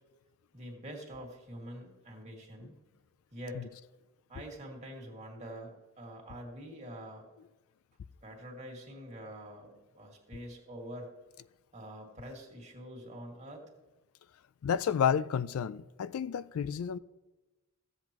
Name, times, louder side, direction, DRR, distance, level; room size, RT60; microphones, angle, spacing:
voice 1, 0.5-2.7 3.3-3.7 4.3-7.3 8.2-11.1 11.7-13.6, equal, 30° right, 2.0 m, -45 dB
voice 2, 14.6-17.0, left 8 dB, 75° left, 0.3 m, -30 dB
15.0 x 8.1 x 2.9 m
head